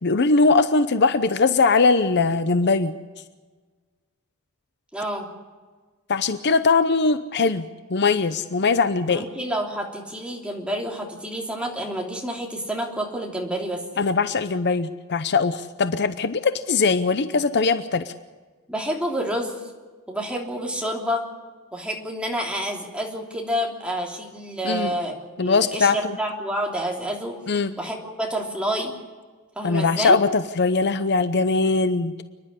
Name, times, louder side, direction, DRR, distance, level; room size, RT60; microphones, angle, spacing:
voice 1, 0.0-2.9 6.1-9.2 14.0-18.1 24.6-24.9 25.4-26.2 27.5-27.8 29.6-32.1, left 4 dB, 50° left, 11 dB, 0.7 m, -21 dB
voice 2, 4.9-5.3 9.1-13.8 18.7-19.6 20.1-21.2 21.7-27.4 27.8-28.9 29.5-30.2, equal, 5° right, 0 dB, 3.2 m, -28 dB
28.5 x 11.0 x 9.9 m, 1.4 s
head